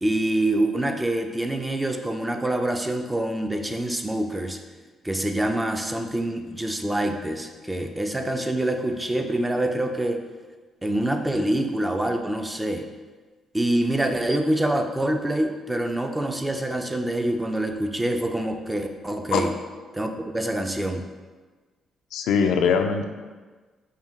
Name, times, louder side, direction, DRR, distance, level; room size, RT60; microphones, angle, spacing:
voice 1, 0.0-4.6 5.0-10.2 10.8-12.9 13.5-19.5 19.9-21.0, right 1 dB, 10° right, 5 dB, 0.4 m, -26 dB
voice 2, 22.1-23.0, left 6 dB, 85° left, 5 dB, 0.3 m, -21 dB
5.4 x 2.2 x 3.6 m, 1.4 s
cardioid pair, 90°, 0 cm